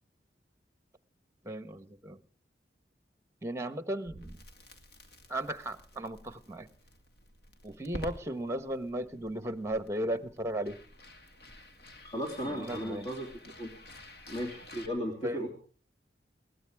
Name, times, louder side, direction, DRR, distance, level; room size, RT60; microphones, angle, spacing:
voice 1, 1.4-2.2 3.4-4.4 5.3-6.7 7.6-10.8 12.4-13.1 15.2-15.5, right 1 dB, 15° right, 12 dB, 1.3 m, -36 dB
Crackle, 4.1-14.9, equal, 65° left, 2.3 m, -50 dB
voice 2, 12.0-13.3 13.6-13.7 14.3-15.5, equal, 40° left, 1 dB, 3.2 m, -35 dB
21.5 x 18.5 x 3.5 m, 0.42 s
head